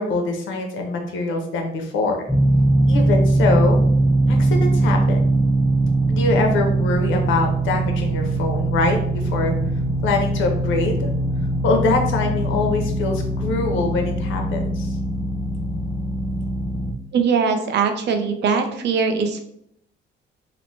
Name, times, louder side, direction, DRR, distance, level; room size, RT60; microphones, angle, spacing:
voice 1, 0.0-2.2 2.9-3.8 4.3-5.2 6.1-9.5 10.0-11.1 11.6-14.9, left 3 dB, 80° left, 3 dB, 0.6 m, -23 dB
sound 1, 2.3-16.9, right 2 dB, 5° left, 0.3 m, -21 dB
voice 2, 17.1-19.4, right 5 dB, 60° right, 6 dB, 0.5 m, -21 dB
3.0 x 2.0 x 2.6 m, 0.72 s
cardioid pair, 90°, 20 cm